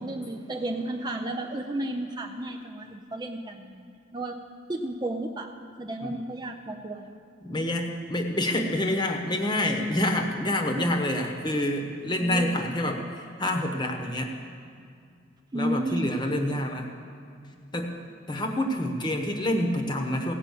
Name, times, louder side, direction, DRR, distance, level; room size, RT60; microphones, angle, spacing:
voice 1, 0.0-4.4 4.7-5.5 5.8-7.2 12.2-12.6 15.5-16.1, right 1 dB, 20° right, 2 dB, 0.5 m, -33 dB
voice 2, 7.4-14.3 15.5-16.9 17.7-18.0 18.3-20.3, left 1 dB, 20° left, 3 dB, 1.0 m, -27 dB
16.5 x 5.6 x 8.4 m, 2.3 s
head